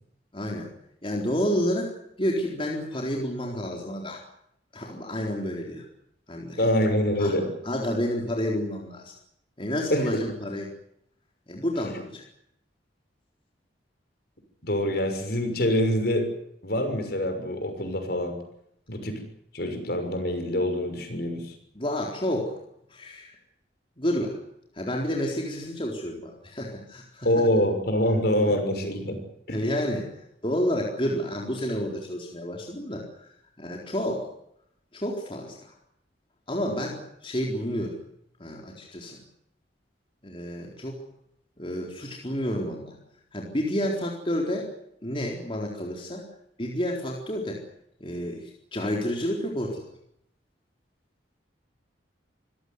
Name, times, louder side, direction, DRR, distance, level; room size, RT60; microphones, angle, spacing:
voice 1, 0.3-0.7 1.0-4.2 4.7-5.9 6.3-6.6 7.2-7.4 7.6-9.1 9.6-10.7 11.5-12.2 21.7-22.6 22.9-23.4 24.0-24.4 24.7-27.4 28.4-28.5 29.5-30.1 30.4-33.3 33.6-34.3 34.9-35.8 36.5-38.0 38.4-39.2 40.2-41.0 41.6-43.0 43.3-44.7 45.0-46.2 46.6-47.6 48.0-49.8, equal, 30° left, -1 dB, 4.1 m, -30 dB
voice 2, 6.6-7.5 9.9-10.2 14.6-16.3 16.6-18.3 18.9-19.2 19.5-21.5 27.2-29.2 29.5-29.6, left 1 dB, 55° left, 6 dB, 6.2 m, -25 dB
26.0 x 17.0 x 9.6 m, 0.74 s
head